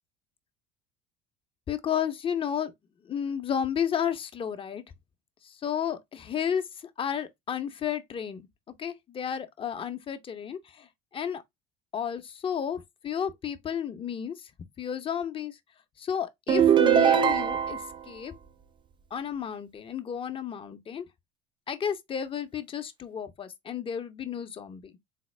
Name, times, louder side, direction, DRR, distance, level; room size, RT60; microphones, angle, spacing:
voice 1, 1.7-2.7 3.0-4.8 5.4-8.4 8.8-10.9 11.1-11.4 11.9-14.5 14.8-15.6 16.0-18.3 19.1-21.0 21.7-24.9, left 8 dB, 35° left, 0.6 m, -32 dB
sound 1, 16.5-18.0, right 9 dB, 30° right, 0.4 m, -21 dB
4.1 x 2.0 x 3.1 m
hypercardioid pair, 80°, 16 cm